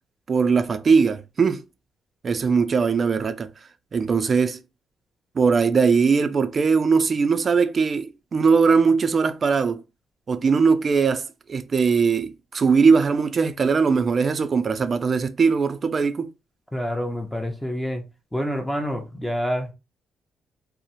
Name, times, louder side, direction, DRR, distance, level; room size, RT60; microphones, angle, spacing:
voice 1, 0.3-1.6 2.2-3.5 3.9-4.6 5.4-9.8 10.3-16.3, right 5 dB, 40° right, 0.4 m, -20 dB
voice 2, 16.7-18.0 18.3-19.7, equal, 5° left, 0.5 m, -27 dB
2.8 x 2.0 x 2.6 m
cardioid pair, 90°, 0 cm